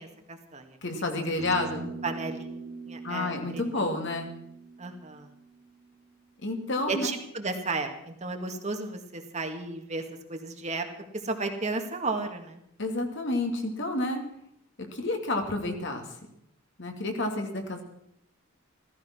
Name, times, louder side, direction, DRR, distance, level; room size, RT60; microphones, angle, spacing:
voice 1, 0.0-0.8 1.1-1.2 1.6-3.9 4.8-5.3 6.9-10.0 10.3-10.9 11.2-12.6, right 3 dB, 35° right, 5 dB, 1.9 m, -34 dB
voice 2, 0.8-1.9 3.0-4.3 6.4-7.1 12.8-14.2 14.9-16.0 16.8-17.8, left 2 dB, 60° left, 4 dB, 2.7 m, -30 dB
sound 1, 1.4-6.0, right 4 dB, 80° right, 2.5 m, -43 dB
15.5 x 14.5 x 6.2 m, 0.74 s
head